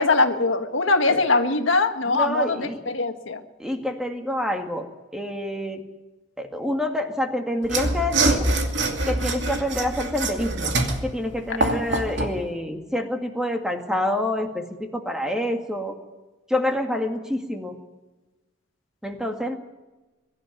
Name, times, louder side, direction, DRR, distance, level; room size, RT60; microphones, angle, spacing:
voice 1, 0.0-3.4, left 3 dB, 85° left, 6 dB, 1.7 m, -22 dB
voice 2, 2.1-2.8 3.6-4.9 5.1-5.8 6.4-8.5 9.1-10.7 11.0-15.9 16.5-17.8 19.0-19.6, left 1 dB, 5° right, 4 dB, 2.0 m, -27 dB
Mechanisms / Sawing, 7.6-12.4, right 2 dB, 65° right, 2.5 m, -24 dB
22.5 x 12.0 x 9.6 m, 1.1 s
head